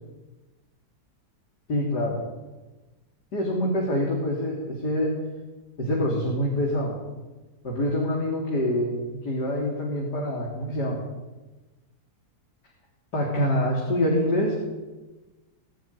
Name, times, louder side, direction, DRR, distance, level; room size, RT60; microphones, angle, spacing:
voice 1, 1.7-2.2 3.3-5.2 5.8-7.0 7.6-11.0 13.1-14.5, left 1 dB, 80° left, -2 dB, 4.1 m, -25 dB
22.0 x 12.5 x 9.8 m, 1.2 s
omnidirectional pair, 1.7 m